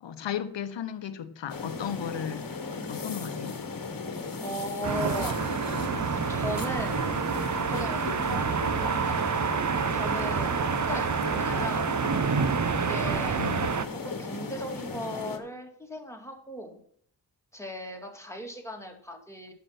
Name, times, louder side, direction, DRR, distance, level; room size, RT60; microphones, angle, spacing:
voice 1, 0.0-2.4 2.8-3.6 13.4-13.7, left 9 dB, 80° left, 12 dB, 1.0 m, -35 dB
sound 1, 1.5-15.4, left 4 dB, 50° left, 1.5 m, -36 dB
voice 2, 4.4-5.4 5.9-7.1 7.7-9.6 9.9-12.0 12.8-13.5 14.0-16.8 17.5-19.5, equal, 5° left, 2 dB, 2.5 m, -38 dB
sound 2, 4.8-13.8, right 6 dB, 40° right, 0.8 m, -28 dB
10.0 x 7.0 x 5.9 m, 0.63 s
cardioid pair, 45°, 43 cm